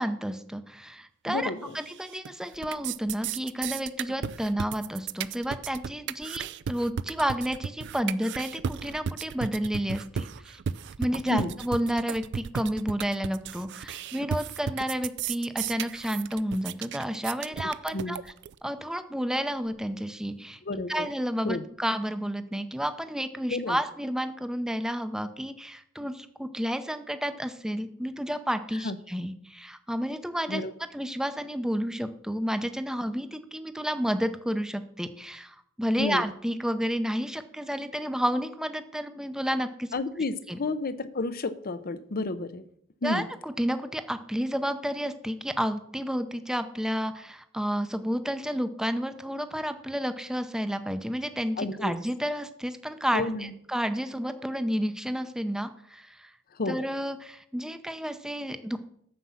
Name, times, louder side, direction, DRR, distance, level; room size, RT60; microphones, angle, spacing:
voice 1, 0.0-10.6 11.0-18.3 18.6-20.6 20.9-30.6 30.9-39.9 40.5-40.6 43.0-56.3 56.7-58.8, equal, 5° right, 9 dB, 0.6 m, -31 dB
voice 2, 1.3-1.7 11.3-11.5 17.9-18.2 20.7-21.1 21.4-21.6 23.5-23.8 28.8-29.0 30.5-30.7 36.0-36.2 39.9-42.6 43.0-43.3 51.6-51.9 53.1-53.5 56.6-56.8, left 2 dB, 45° left, 14 dB, 0.7 m, -31 dB
sound 1, 1.8-2.3 2.5-18.5, right 7 dB, 55° right, 0.4 m, -34 dB
9.5 x 7.4 x 5.7 m, 0.70 s
head